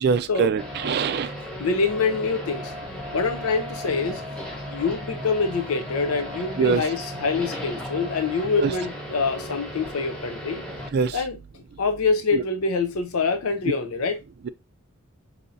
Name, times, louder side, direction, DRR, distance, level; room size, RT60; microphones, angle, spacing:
voice 1, 0.0-1.3 6.6-6.8 8.6-8.7 10.9-11.1 12.3-12.4, right 6 dB, 50° right, 0.3 m, -23 dB
sound 1, 0.6-10.9, equal, 5° left, 1.1 m, -35 dB
voice 2, 1.6-2.7 3.1-10.6 11.1-11.4 11.8-14.2, left 4 dB, 85° left, 0.6 m, -25 dB
4.9 x 2.7 x 2.7 m
head